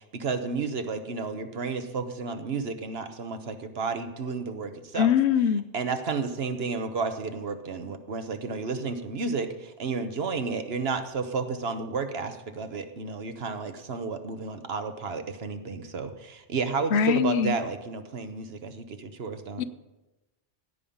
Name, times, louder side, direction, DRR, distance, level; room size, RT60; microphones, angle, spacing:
voice 1, 0.0-5.1 5.7-19.6, right 4 dB, 65° right, 8 dB, 1.2 m, -32 dB
voice 2, 5.0-5.7 16.9-17.6 19.6-19.7, left 8 dB, 70° left, 14 dB, 0.9 m, -22 dB
16.0 x 5.5 x 8.6 m, 1.0 s
omnidirectional pair, 1.1 m